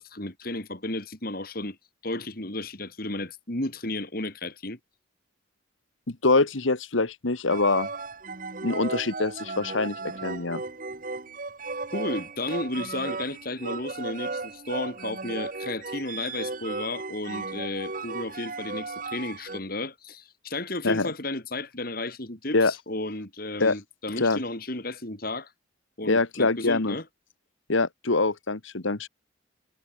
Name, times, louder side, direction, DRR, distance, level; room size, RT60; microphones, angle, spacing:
voice 1, 0.0-1.8 2.0-4.8 11.9-25.5 26.0-27.0, left 2 dB, 45° left, 3.2 m, -33 dB
voice 2, 6.1-7.9 8.6-10.6 20.8-21.1 22.5-22.7 23.6-23.7 24.2-24.4 26.1-27.0 27.7-29.1, left 3 dB, 75° left, 1.5 m, -24 dB
sound 1, 7.5-19.6, right 3 dB, 40° right, 1.2 m, -35 dB
head